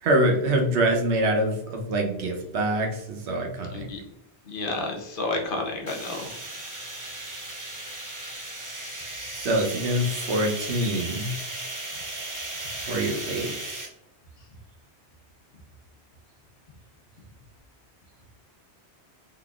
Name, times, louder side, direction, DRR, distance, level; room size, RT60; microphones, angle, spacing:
voice 1, 0.0-3.9 9.3-11.3 12.9-13.9, right 1 dB, 85° right, 2 dB, 1.1 m, -25 dB
voice 2, 4.5-6.3, left 2 dB, 55° left, 2 dB, 0.8 m, -30 dB
sound 1, 5.9-13.9, right 2 dB, 20° right, 0.6 m, -36 dB
3.9 x 3.4 x 2.3 m, 0.86 s
omnidirectional pair, 1.1 m